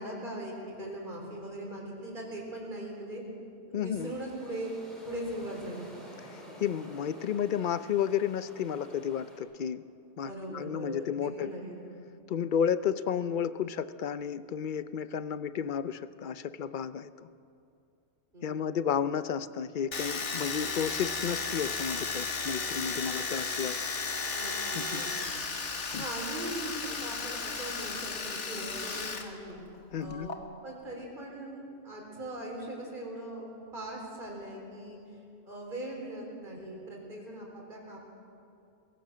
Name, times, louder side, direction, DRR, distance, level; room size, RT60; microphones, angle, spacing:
voice 1, 0.0-3.2 3.7-4.7 5.0-5.9 10.2-11.8 18.3-18.8 24.3-25.3 25.9-29.6 30.0-35.2 35.5-38.0, right 1 dB, 45° right, -1 dB, 4.1 m, -40 dB
voice 2, 3.7-4.1 6.3-9.8 10.2-11.5 12.3-17.3 18.4-23.8 24.7-25.0 25.9-26.0 29.9-30.3, left 8 dB, 50° left, 14 dB, 0.7 m, -32 dB
sound 1, 3.9-9.4, equal, ahead, 4.9 m, -50 dB
Domestic sounds home sounds, 19.9-29.3 29.5-30.4, left 4 dB, 75° left, 1.8 m, -34 dB
22.5 x 16.5 x 7.5 m, 2.6 s
omnidirectional pair, 1.2 m